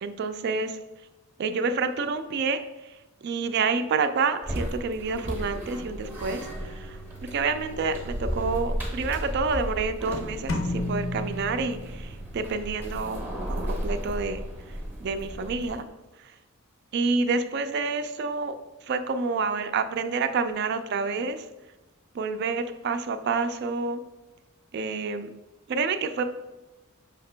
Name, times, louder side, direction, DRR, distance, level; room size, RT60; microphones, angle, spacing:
voice 1, 0.0-0.8 1.4-2.6 3.2-7.0 7.3-14.4 15.0-15.8 16.9-18.5 18.9-21.5 22.1-24.0 24.7-25.3 25.7-26.2, right 4 dB, 50° right, 10 dB, 0.3 m, -28 dB
sound 1, 4.4-15.9, equal, 10° right, 0.6 m, -34 dB
sound 2, 10.5-12.4, left 1 dB, 60° left, 0.6 m, -32 dB
5.0 x 2.8 x 3.2 m, 1.1 s
head